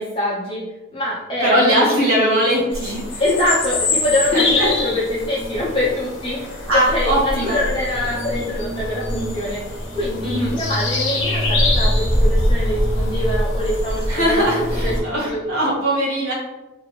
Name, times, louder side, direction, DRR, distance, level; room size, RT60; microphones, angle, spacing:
voice 1, 0.0-1.9 2.2-2.5 3.2-6.5 6.7-15.4, left 1 dB, 25° left, -9 dB, 0.6 m, -24 dB
voice 2, 1.4-3.2 4.3-4.7 6.7-7.6 10.2-10.6 14.1-16.3, equal, 85° right, -5 dB, 1.0 m, -20 dB
sound 1, 2.7-15.0, left 1 dB, 60° left, 0.8 m, -23 dB
2.8 x 2.5 x 2.8 m, 1.0 s
head